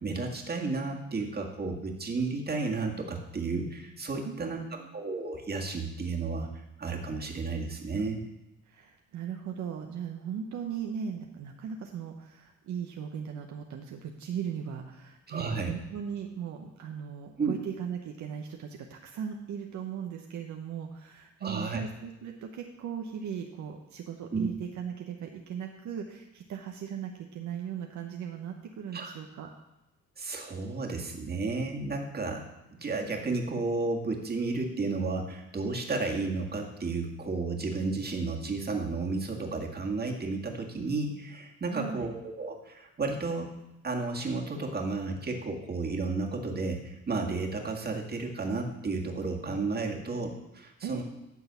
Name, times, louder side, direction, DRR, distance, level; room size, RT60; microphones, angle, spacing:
voice 1, 0.0-4.6 4.9-6.5 6.8-8.2 15.3-15.7 17.4-17.6 21.4-21.8 24.3-24.5 28.9-29.1 30.2-32.5 32.8-43.5 43.8-51.0, right 3 dB, 30° right, 1 dB, 1.9 m, -32 dB
voice 2, 4.2-4.9 8.7-29.5 41.7-42.1 50.8-51.0, right 7 dB, 70° right, 2 dB, 0.9 m, -38 dB
10.5 x 3.9 x 6.9 m, 0.97 s
cardioid pair, 90°, 30 cm